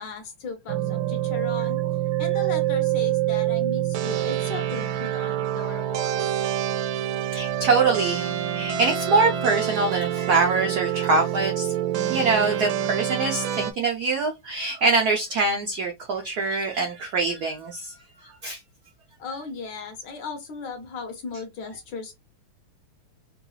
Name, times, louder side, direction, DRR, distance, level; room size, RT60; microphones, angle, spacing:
voice 1, 0.0-1.8 2.2-6.2 19.2-22.1, left 4 dB, 70° left, 1.1 m, -36 dB
sound 1, 0.7-13.7, right 12 dB, 75° right, 1.2 m, -26 dB
voice 2, 7.3-11.7 12.1-17.9 18.2-18.6, right 3 dB, 90° right, 0.8 m, -24 dB
3.7 x 2.3 x 3.0 m
omnidirectional pair, 2.4 m